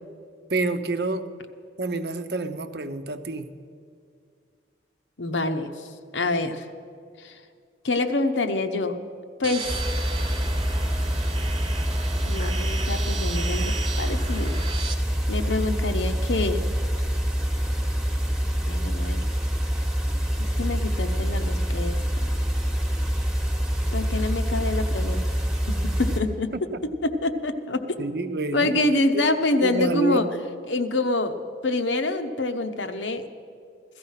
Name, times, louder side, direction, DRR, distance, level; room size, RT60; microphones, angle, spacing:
voice 1, 0.5-1.3 1.8-3.5 26.7-26.8 28.0-28.7 29.1-29.3 29.6-30.3, right 3 dB, 55° right, 10 dB, 0.7 m, -28 dB
voice 2, 5.2-5.9 6.1-6.7 7.2-7.4 7.8-9.0 9.4-9.8 12.2-14.6 15.3-16.6 18.7-19.2 20.4-22.0 23.9-25.2 25.7-26.5 26.8-28.0 28.5-30.3 30.7-31.3 31.6-33.3, left 2 dB, 80° left, 8 dB, 1.0 m, -26 dB
sound 1, 9.4-14.9, right 3 dB, 25° right, 1.0 m, -34 dB
sound 2, 9.7-26.2, equal, 5° right, 1.1 m, -26 dB
16.5 x 14.0 x 5.7 m, 2.3 s
head